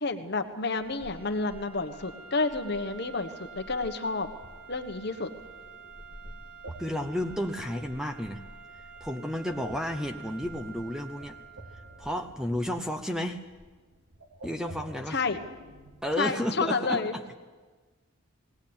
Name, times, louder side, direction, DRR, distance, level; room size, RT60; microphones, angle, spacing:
voice 1, 0.0-4.3 4.7-5.3 15.1-15.4 16.2-17.1, left 3 dB, 50° left, 6 dB, 1.3 m, -30 dB
sound 1, 0.8-12.3, right 6 dB, 65° right, 4.4 m, -49 dB
sound 2, 0.8-16.2, right 1 dB, 85° right, 2.7 m, -50 dB
voice 2, 6.8-8.4 9.0-11.4 12.0-13.4 14.4-15.2 16.0-17.2, equal, 5° right, 7 dB, 0.8 m, -32 dB
19.5 x 18.0 x 8.8 m, 1.3 s
head